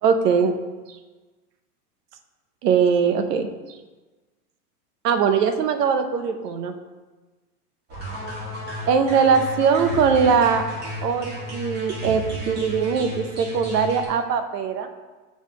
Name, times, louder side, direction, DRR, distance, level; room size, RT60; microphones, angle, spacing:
voice 1, 0.0-0.6 2.6-3.5 5.0-6.7 8.9-10.6 11.0-14.9, right 6 dB, 80° right, 8 dB, 0.9 m, -21 dB
sound 1, 7.9-14.1, left 1 dB, 20° right, 1.4 m, -33 dB
6.4 x 3.7 x 4.9 m, 1.3 s
supercardioid pair, 150°, 47 cm